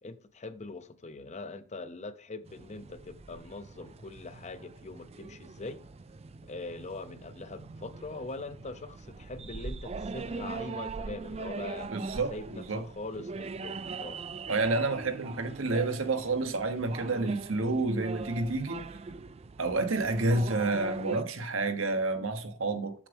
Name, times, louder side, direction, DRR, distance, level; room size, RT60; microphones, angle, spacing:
voice 1, 0.0-5.8 6.5-11.9 12.3-14.2, left 3 dB, 35° left, 0.7 m, -42 dB
sound 1, 2.5-21.2, right 4 dB, 30° right, 0.4 m, -42 dB
voice 2, 11.9-12.8 14.5-18.9 19.6-22.9, right 3 dB, 75° right, 1.1 m, -29 dB
7.4 x 7.2 x 3.4 m
head